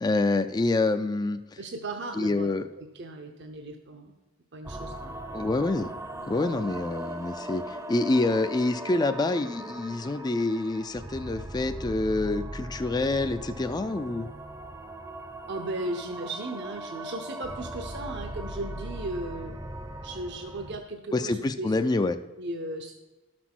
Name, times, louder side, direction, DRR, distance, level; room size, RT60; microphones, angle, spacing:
voice 1, 0.0-1.6 2.2-2.6 5.3-5.9 6.3-14.3 21.1-22.2, left 2 dB, 20° left, 8 dB, 0.3 m, -27 dB
voice 2, 1.6-2.5 2.8-4.1 4.5-5.2 15.5-19.5 20.0-21.8 22.4-22.9, right 2 dB, 55° right, 5 dB, 0.8 m, -36 dB
sound 1, 4.6-20.8, right 1 dB, 15° right, 0.6 m, -39 dB
12.0 x 6.1 x 6.0 m, 1.2 s
head